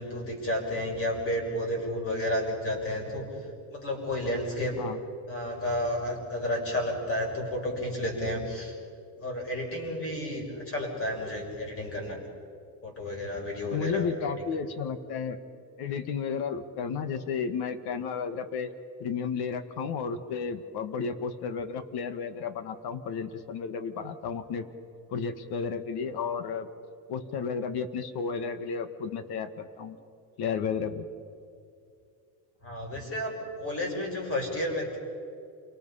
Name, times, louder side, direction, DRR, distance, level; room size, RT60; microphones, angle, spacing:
voice 1, 0.0-3.3 3.7-4.8 5.3-8.7 9.2-12.3 12.8-14.1 32.6-35.0, left 1 dB, 30° left, 1 dB, 6.1 m, -31 dB
voice 2, 13.7-15.4 15.8-18.7 19.0-24.7 25.1-26.7 27.1-30.0 30.4-31.1, left 6 dB, 60° left, 10 dB, 1.7 m, -32 dB
28.5 x 24.0 x 5.7 m, 2.4 s
cardioid pair, 155°, 44 cm